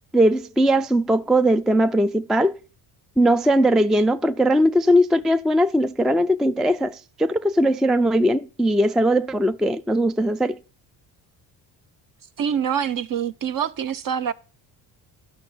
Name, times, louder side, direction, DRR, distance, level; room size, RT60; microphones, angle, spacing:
voice 1, 0.1-2.6 3.2-10.6, equal, ahead, 0.4 m, -19 dB
voice 2, 12.4-14.3, right 8 dB, 45° right, 0.9 m, -25 dB
12.0 x 5.9 x 5.6 m
supercardioid pair, 75°, 47 cm